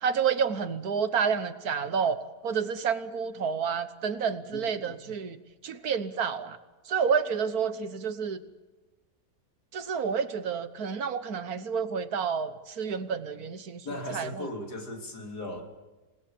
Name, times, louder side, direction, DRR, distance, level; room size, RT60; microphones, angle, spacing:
voice 1, 0.0-5.4 5.6-6.6 6.9-8.4 9.7-13.8 14.1-14.5, right 6 dB, 65° right, 12 dB, 1.6 m, -29 dB
voice 2, 13.8-15.6, left 1 dB, 75° left, 2 dB, 3.7 m, -37 dB
27.5 x 19.0 x 7.4 m, 1.2 s
omnidirectional pair, 1.7 m